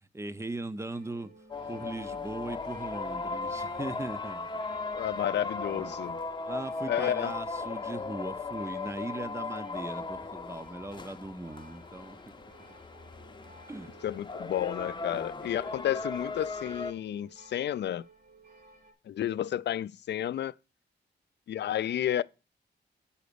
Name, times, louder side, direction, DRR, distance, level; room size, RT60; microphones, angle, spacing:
voice 1, 0.1-1.3 1.7-4.6 5.7-6.0 6.5-12.3 13.7-14.0 15.1-15.9, right 2 dB, 15° right, 0.5 m, -39 dB
sound 1, 0.9-18.9, right 2 dB, 65° right, 3.3 m, -57 dB
sound 2, 1.5-16.9, left 3 dB, 25° left, 0.6 m, -37 dB
voice 2, 4.9-6.2 6.9-7.3 14.0-18.0 19.1-20.6 21.5-22.2, left 11 dB, 70° left, 0.4 m, -31 dB
7.1 x 5.0 x 6.7 m
wide cardioid pair, 130°, 18 cm